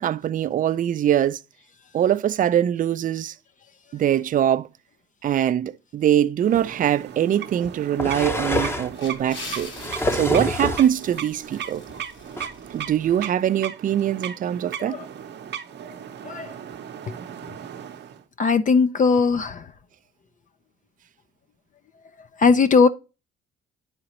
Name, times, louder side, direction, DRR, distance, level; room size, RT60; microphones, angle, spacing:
voice 1, 0.0-1.4 1.9-3.3 3.9-4.7 5.2-9.7 10.1-11.8 12.7-15.0, right 10 dB, 45° right, 0.4 m, -22 dB
sound 1, 6.4-18.2, right 9 dB, 60° right, 0.8 m, -37 dB
sound 2, 6.5-6.6 7.6-9.0 9.6-10.9 11.9-12.0 12.4-12.5, left 1 dB, 10° left, 0.7 m, -26 dB
sound 3, 8.9-13.2, left 3 dB, 70° left, 1.8 m, -42 dB
voice 2, 18.4-19.6 22.4-22.9, left 5 dB, 40° left, 0.5 m, -18 dB
9.7 x 3.9 x 3.0 m
cardioid pair, 90°, 20 cm